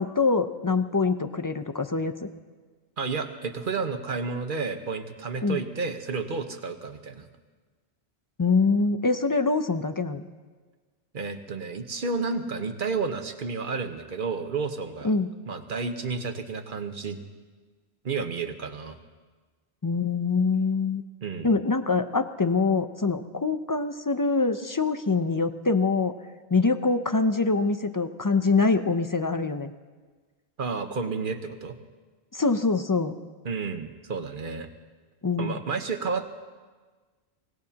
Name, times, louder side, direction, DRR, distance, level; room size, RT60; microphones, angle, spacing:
voice 1, 0.0-2.1 5.4-5.6 8.4-10.3 15.0-15.3 19.8-21.0 21.4-26.1 26.5-29.7 32.3-33.1 35.2-35.6, left 4 dB, 35° left, 9 dB, 0.3 m, -24 dB
voice 2, 3.0-7.3 11.1-15.1 15.5-17.2 18.0-19.0 21.2-21.5 30.6-31.8 33.4-34.7 35.4-36.3, right 4 dB, 50° right, 7 dB, 1.1 m, -31 dB
25.0 x 17.5 x 2.9 m, 1.4 s
omnidirectional pair, 1.1 m